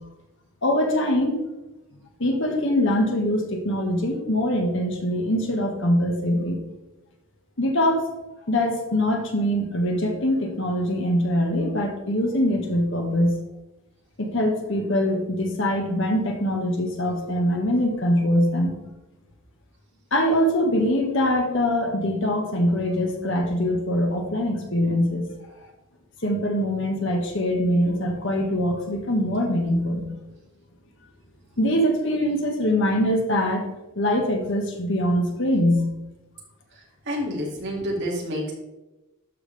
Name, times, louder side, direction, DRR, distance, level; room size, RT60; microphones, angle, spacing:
voice 1, 0.6-1.4 2.2-6.6 7.6-8.0 8.5-13.3 14.2-18.8 20.1-25.3 26.2-30.1 31.6-33.6 33.9-35.8, left 1 dB, 60° left, 3 dB, 1.4 m, -23 dB
voice 2, 37.1-38.5, equal, 50° right, -2 dB, 2.3 m, -28 dB
12.0 x 5.9 x 3.4 m, 1.0 s
head